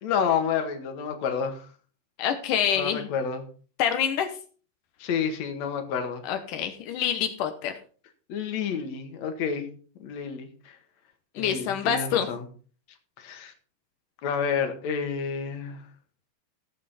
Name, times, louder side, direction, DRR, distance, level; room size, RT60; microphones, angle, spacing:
voice 1, 0.0-1.7 2.8-3.4 5.0-6.2 8.3-9.7 10.0-10.8 11.4-12.4 13.2-13.5 14.2-15.8, left 6 dB, 55° left, 6 dB, 2.1 m, -29 dB
voice 2, 2.2-3.1 3.8-4.3 6.2-7.7 11.3-12.3, left 8 dB, 90° left, 7 dB, 1.8 m, -26 dB
17.5 x 7.8 x 4.2 m, 0.40 s
omnidirectional pair, 5.3 m